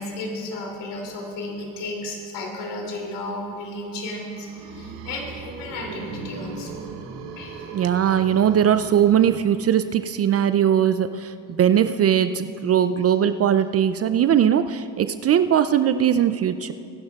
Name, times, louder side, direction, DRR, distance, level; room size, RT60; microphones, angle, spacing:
voice 1, 0.0-6.9 7.4-7.7, left 2 dB, 65° left, 0 dB, 2.9 m, -33 dB
sound 1, 4.0-9.9, right 5 dB, 75° right, 1.3 m, -38 dB
voice 2, 7.7-16.7, right 9 dB, 35° right, 11 dB, 0.4 m, -20 dB
23.0 x 11.5 x 2.4 m, 2.5 s
hypercardioid pair, 65°, 44 cm